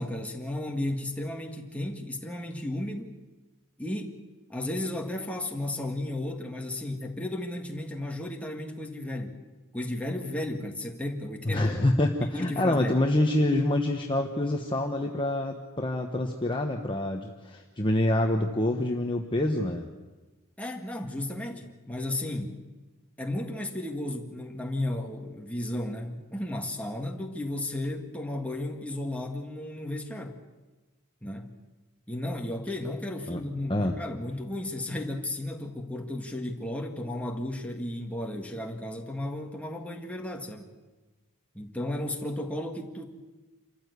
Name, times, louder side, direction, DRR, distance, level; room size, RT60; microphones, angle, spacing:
voice 1, 0.0-3.1 3.8-4.2 4.5-9.4 9.7-11.8 12.2-13.0 20.6-22.6 23.2-30.4 31.2-31.5 32.1-40.7 41.5-43.1, left 1 dB, 5° left, 1 dB, 1.8 m, -34 dB
voice 2, 11.4-19.8 33.3-33.4 33.7-33.9, left 1 dB, 25° left, 2 dB, 1.1 m, -26 dB
27.0 x 14.5 x 8.2 m, 1.2 s
head